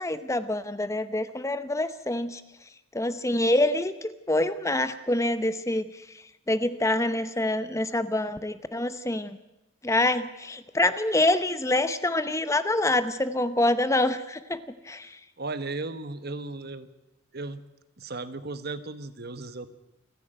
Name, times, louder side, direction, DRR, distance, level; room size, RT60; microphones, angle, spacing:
voice 1, 0.0-2.4 2.9-5.9 6.5-9.4 9.8-15.1, left 1 dB, 15° left, 12 dB, 0.8 m, -26 dB
voice 2, 15.4-16.9 17.3-17.6 18.0-19.7, right 3 dB, 55° right, 12 dB, 1.2 m, -35 dB
28.5 x 11.0 x 9.0 m, 0.98 s
head